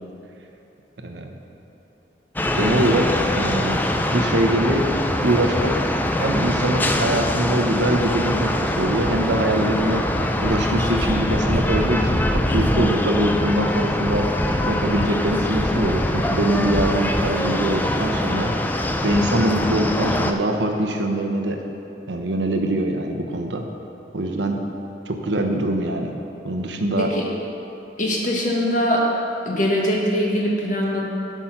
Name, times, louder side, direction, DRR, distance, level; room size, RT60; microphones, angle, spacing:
voice 1, 1.0-1.4 2.5-3.8 4.1-4.9 5.2-5.9 6.2-10.0 10.4-14.3 14.7-18.5 19.0-21.6 22.1-23.6 24.1-24.6 25.1-26.1 26.4-27.1, right 1 dB, 75° right, 4 dB, 1.0 m, -23 dB
sound 1, 2.4-20.3, left 1 dB, 10° left, 0.4 m, -23 dB
voice 2, 27.0-27.3 28.0-29.1 29.4-31.0, equal, 45° left, -2 dB, 1.6 m, -22 dB
12.0 x 6.0 x 5.9 m, 2.9 s
head